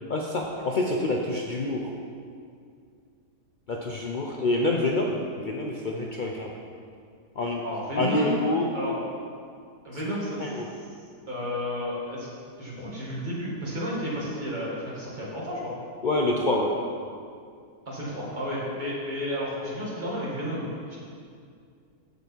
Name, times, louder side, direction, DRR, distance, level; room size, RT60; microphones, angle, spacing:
voice 1, 0.1-1.9 3.7-6.5 7.4-7.6 8.0-8.7 10.4-10.7 16.0-16.7, left 2 dB, 75° left, -1 dB, 0.4 m, -27 dB
voice 2, 7.6-9.0 9.8-10.6 11.3-12.3 12.6-15.7 17.9-21.0, equal, 25° right, -6 dB, 2.4 m, -32 dB
14.0 x 5.4 x 4.5 m, 2.3 s
omnidirectional pair, 1.8 m